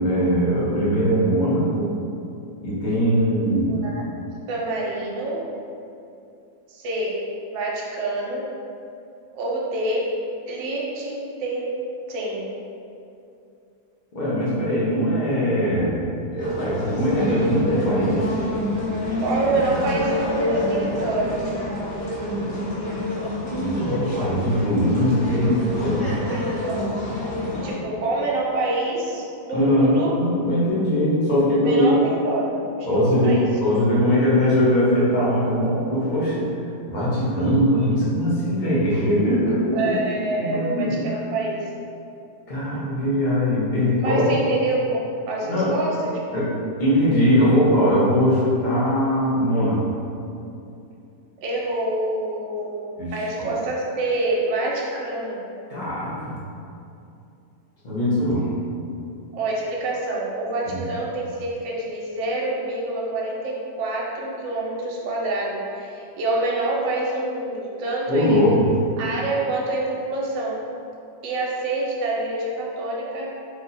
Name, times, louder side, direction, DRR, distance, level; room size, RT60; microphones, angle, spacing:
voice 1, 0.0-1.9 2.6-3.8 14.1-18.3 23.5-26.2 29.5-32.0 32.9-36.5 36.9-39.9 40.4-40.9 42.5-44.3 45.5-45.7 46.3-46.5 46.8-49.9 53.0-53.5 55.7-56.4 57.8-58.5 60.7-60.8 68.1-68.7, equal, 75° left, -9 dB, 0.4 m, -21 dB
voice 2, 3.7-4.0 4.5-5.5 6.7-8.5 9.3-10.2 10.4-11.7 12.1-12.6 19.2-21.4 26.0-26.9 27.6-30.1 31.6-32.6 32.9-33.6 39.7-41.7 44.0-46.4 51.4-55.4 59.3-68.4 69.0-70.6 71.2-73.3, right 2 dB, 80° right, -3 dB, 1.3 m, -27 dB
sound 1, 16.4-27.7, left 1 dB, 40° left, 0.9 m, -27 dB
3.4 x 2.1 x 3.9 m, 2.6 s
omnidirectional pair, 2.1 m